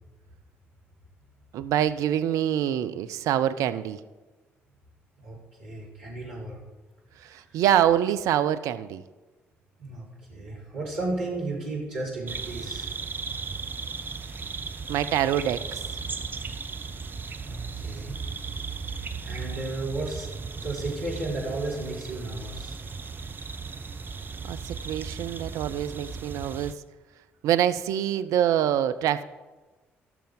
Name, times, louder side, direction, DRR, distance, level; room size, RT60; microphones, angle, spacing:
voice 1, 1.5-4.0 7.2-9.0 14.9-15.8 24.4-26.7 27.4-29.2, right 10 dB, 60° right, 11 dB, 0.5 m, -25 dB
voice 2, 5.2-6.6 7.2-7.4 9.8-12.9 17.4-18.2 19.2-20.3 20.6-22.8, right 2 dB, 75° right, -6 dB, 3.2 m, -34 dB
sound 1, 12.3-26.7, right 5 dB, 30° right, 0.8 m, -36 dB
17.0 x 6.8 x 3.8 m, 1.2 s
figure-of-eight pair, 45°, 6 cm